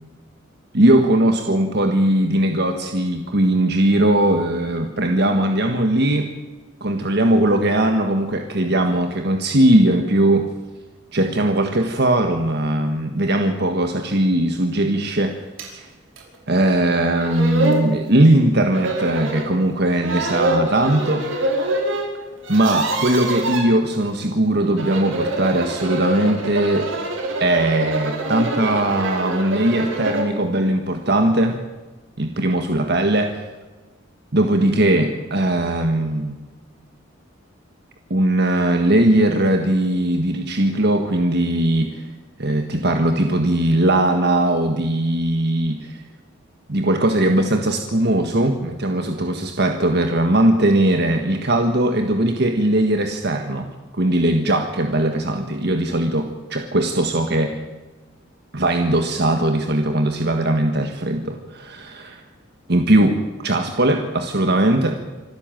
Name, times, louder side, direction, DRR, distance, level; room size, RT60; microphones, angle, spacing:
voice 1, 0.7-6.3 6.8-10.5 11.1-15.4 15.7-15.9 16.5-21.3 22.5-26.9 27.4-31.6 32.2-33.4 34.3-36.3 38.1-42.1 42.4-46.0 46.7-57.6 58.5-62.2 62.7-65.0, right 1 dB, 55° right, 5 dB, 1.6 m, -19 dB
sound 1, 15.6-15.7 16.2-16.3 16.9-17.0 17.2-17.9 18.7-19.5 20.0-22.0 22.3-23.6 24.6-30.3, right 1 dB, 75° right, 5.3 m, -25 dB
26.0 x 13.0 x 9.1 m, 1.2 s
head